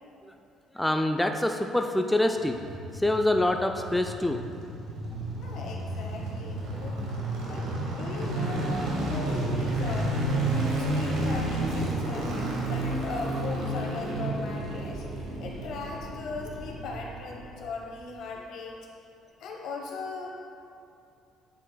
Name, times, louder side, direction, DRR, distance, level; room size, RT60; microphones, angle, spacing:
voice 1, 0.7-2.6 2.9-4.4, left 1 dB, 5° left, 4 dB, 0.3 m, -25 dB
sound 1, 2.4-17.6 17.9-18.0, right 1 dB, 75° right, 1.2 m, -31 dB
voice 2, 5.4-7.0 7.5-10.2 10.5-12.3 12.6-15.0 15.4-18.8 19.4-20.3, left 3 dB, 70° left, 0 dB, 1.0 m, -38 dB
8.8 x 4.8 x 2.2 m, 2.5 s
cardioid pair, 95°, 0 cm